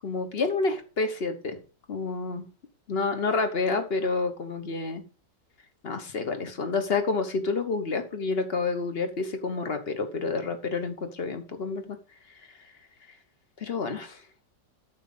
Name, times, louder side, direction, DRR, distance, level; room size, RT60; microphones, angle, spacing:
voice 1, 0.0-1.6 1.9-2.5 2.9-5.0 5.8-12.0 13.6-14.2, left 4 dB, 40° left, 8 dB, 1.1 m, -29 dB
8.9 x 7.2 x 4.0 m, 0.35 s
omnidirectional pair, 1.9 m